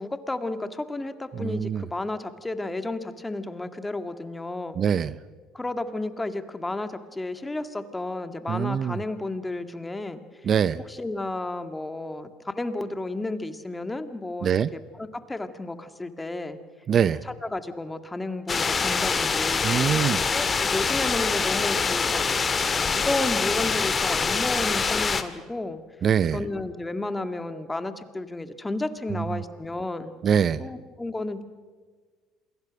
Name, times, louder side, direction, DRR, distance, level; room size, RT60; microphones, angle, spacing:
voice 1, 0.0-4.8 5.5-10.2 10.9-16.6 17.2-20.0 20.3-22.2 22.9-25.8 26.3-30.1 30.6-31.4, left 2 dB, 15° left, 9 dB, 2.0 m, -32 dB
voice 2, 1.3-1.8 4.8-5.1 8.5-9.0 10.4-10.8 14.4-14.7 16.9-17.2 19.6-20.2 26.0-26.4 29.1-29.4 30.2-30.7, right 8 dB, 45° right, 18 dB, 0.6 m, -23 dB
sound 1, 18.5-25.2, left 5 dB, 30° left, 1.9 m, -25 dB
28.0 x 22.0 x 6.4 m, 1.5 s
hypercardioid pair, 70°, 0 cm